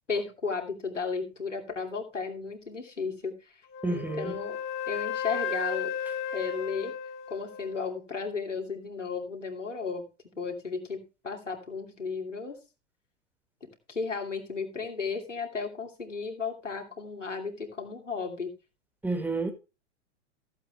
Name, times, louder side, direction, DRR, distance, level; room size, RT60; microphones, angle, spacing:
voice 1, 0.1-3.4 3.9-4.6 4.9-5.9 6.3-6.9 7.3-10.0 10.4-12.6 13.6-18.5, left 5 dB, 85° left, 2.8 m, -34 dB
Wind instrument woodwind instrument, 3.7-7.9, left 7 dB, 35° left, 1.6 m, -34 dB
voice 2, 3.8-4.3 19.0-19.5, right 2 dB, 5° right, 1.9 m, -30 dB
15.0 x 7.9 x 3.3 m
figure-of-eight pair, 100°, 36 cm